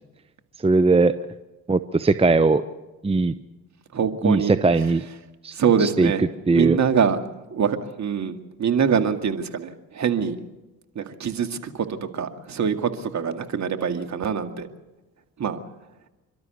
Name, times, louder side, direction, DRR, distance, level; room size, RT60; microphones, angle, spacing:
voice 1, 0.6-1.1 1.7-2.6 3.0-3.3 4.2-5.0 5.4-5.5 5.8-6.1 6.5-6.8, right 3 dB, 15° right, 12 dB, 0.8 m, -19 dB
voice 2, 3.9-4.9 5.5-6.2 6.5-7.2 7.5-10.4 11.0-14.7 15.4-15.6, right 7 dB, 45° right, 6 dB, 2.2 m, -24 dB
28.5 x 12.5 x 8.2 m, 1.1 s
hypercardioid pair, 55°, 41 cm